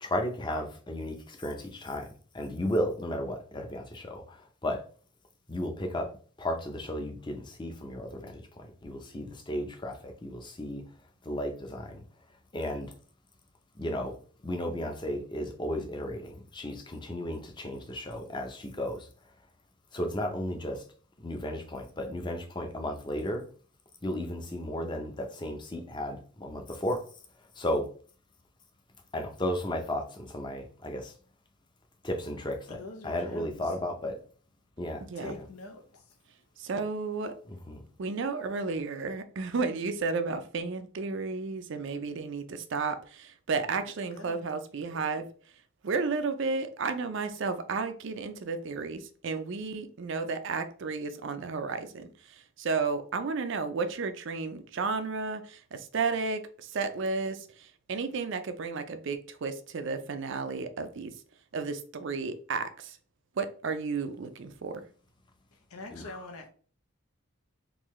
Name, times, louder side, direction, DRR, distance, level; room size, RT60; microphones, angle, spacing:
voice 1, 0.0-2.1 2.3-4.8 5.5-6.1 6.4-10.8 11.2-12.0 12.5-12.9 13.8-14.1 14.4-19.1 19.9-20.8 21.2-23.4 24.0-27.0 27.5-27.8 29.1-31.1 32.0-34.2 34.8-35.4 37.5-37.8 65.9-66.2, left 1 dB, 20° left, 0.5 m, -34 dB
voice 2, 32.7-33.6 35.1-36.0 43.8-44.5 65.7-66.5, left 2 dB, 85° left, 0.7 m, -44 dB
voice 3, 35.0-35.4 36.6-37.4 38.0-45.3 45.8-61.1 61.5-63.0 63.4-64.8, right 4 dB, 55° right, 0.4 m, -33 dB
3.8 x 2.6 x 3.1 m
head